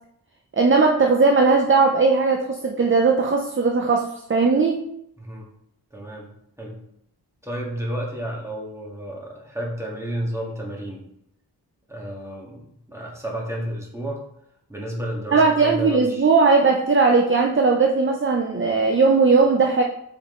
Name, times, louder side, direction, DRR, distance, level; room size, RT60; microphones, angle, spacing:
voice 1, 0.5-4.8 15.3-19.8, right 4 dB, 30° right, 3 dB, 0.7 m, -18 dB
voice 2, 5.2-5.5 5.9-6.3 6.6-6.8 7.4-11.0 11.9-14.2 14.7-16.3, right 1 dB, 5° right, -3 dB, 2.0 m, -31 dB
5.4 x 5.0 x 3.8 m, 0.76 s
cardioid pair, 55°, 40 cm